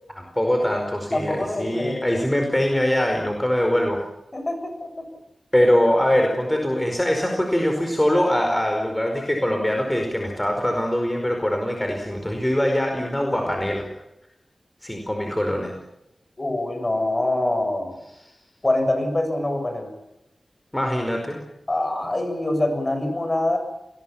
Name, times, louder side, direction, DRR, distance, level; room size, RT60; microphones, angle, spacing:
voice 1, 0.1-4.0 5.5-13.9 14.8-15.7 18.2-18.3 20.7-21.4, equal, 10° left, 3 dB, 4.9 m, -22 dB
voice 2, 1.1-2.1 4.3-5.1 16.4-18.0 18.6-19.9 21.7-23.6, left 1 dB, 30° left, 6 dB, 7.5 m, -24 dB
28.5 x 20.5 x 7.3 m, 0.88 s
wide cardioid pair, 75°, 0 cm